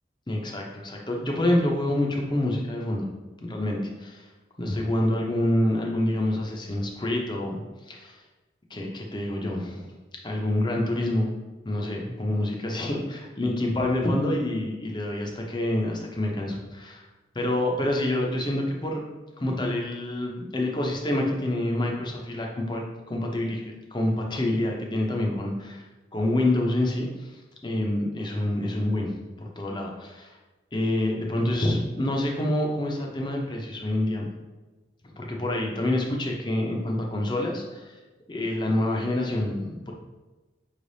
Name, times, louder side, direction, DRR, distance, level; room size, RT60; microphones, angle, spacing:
voice 1, 0.3-3.1 3.4-4.3 4.6-8.2 8.7-9.9 10.2-11.3 11.6-17.1 17.3-19.0 19.4-25.8 26.1-27.3 27.6-30.4 30.7-34.3 35.2-38.0 38.3-39.9, left 1 dB, 25° left, 0 dB, 0.6 m, -27 dB
5.5 x 3.3 x 2.7 m, 1.2 s
head